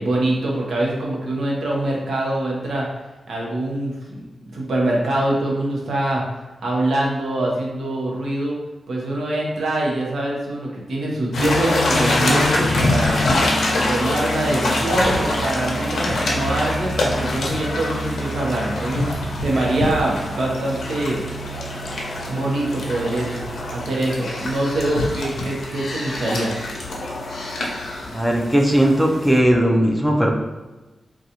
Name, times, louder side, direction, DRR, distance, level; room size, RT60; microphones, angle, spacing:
voice 1, 0.0-2.9 3.3-6.2 6.6-8.5 8.9-13.2 13.9-19.1 19.4-21.2 22.3-23.4 23.7-26.5, right 1 dB, 85° right, -3 dB, 0.8 m, -24 dB
sound 1, 11.3-29.4, left 1 dB, 90° left, 0.6 m, -24 dB
voice 2, 28.1-30.3, right 1 dB, 5° right, 0 dB, 0.4 m, -17 dB
3.8 x 2.3 x 2.8 m, 1.1 s
wide cardioid pair, 175°, 0 cm